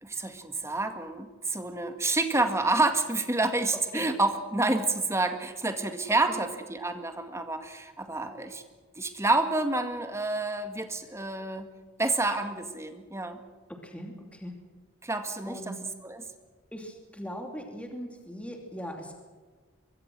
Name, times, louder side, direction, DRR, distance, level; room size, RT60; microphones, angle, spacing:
voice 1, 0.0-8.6 9.0-11.7 12.0-13.4 15.0-16.3, right 2 dB, 15° right, 7 dB, 2.0 m, -29 dB
voice 2, 13.7-14.6 15.5-15.7 16.7-19.1, equal, 5° left, 2 dB, 2.8 m, -39 dB
23.5 x 23.0 x 6.2 m, 1.4 s
head